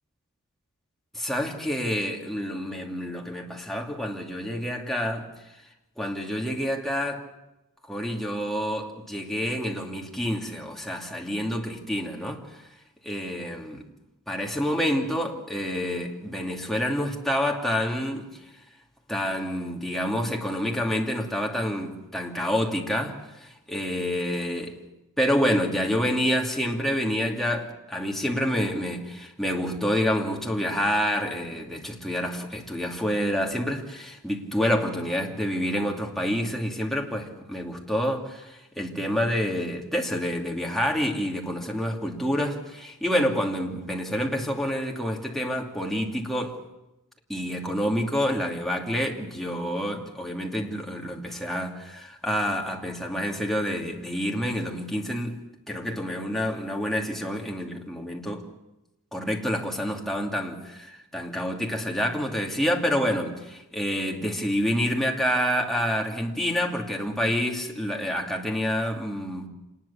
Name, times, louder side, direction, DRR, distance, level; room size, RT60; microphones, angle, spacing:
voice 1, 1.2-5.3 6.0-7.2 7.9-12.4 13.0-13.8 14.3-18.3 19.1-24.7 25.2-46.6 47.3-55.4 55.7-58.4 59.1-69.5, equal, ahead, 0 dB, 2.8 m, -28 dB
26.5 x 20.0 x 7.3 m, 0.97 s
head